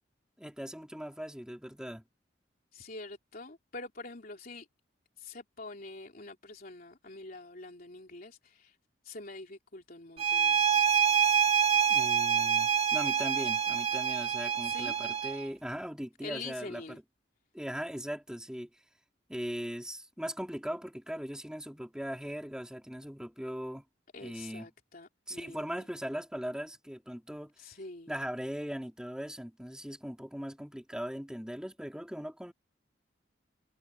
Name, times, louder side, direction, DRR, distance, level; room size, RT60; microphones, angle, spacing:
voice 1, 0.4-2.0 11.9-16.8 17.5-18.7 19.3-23.8 24.2-24.7 25.3-27.5 28.1-32.5, equal, 5° right, 2.9 m, -39 dB
voice 2, 2.7-4.7 5.2-8.8 9.0-10.6 14.6-14.9 16.2-17.0 24.1-25.9 27.6-28.1, left 3 dB, 50° left, 3.3 m, -45 dB
sound 1, 10.2-15.5, right 8 dB, 35° right, 1.5 m, -26 dB
head